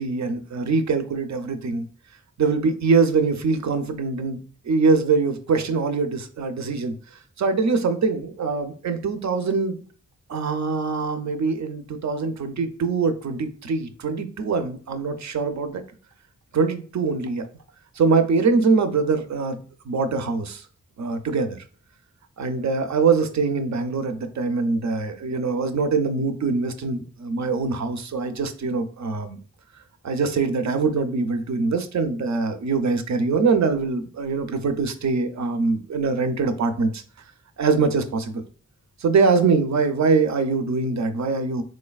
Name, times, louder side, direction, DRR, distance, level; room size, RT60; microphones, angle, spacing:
voice 1, 0.0-1.9 2.4-4.4 4.6-6.9 7.4-9.8 10.3-15.8 16.5-17.5 18.0-20.7 21.0-21.6 22.4-29.4 30.0-37.0 37.6-38.4 39.0-41.6, right 4 dB, 60° right, 8 dB, 0.5 m, -23 dB
3.7 x 3.2 x 2.3 m, 0.43 s
wide cardioid pair, 105°, 32 cm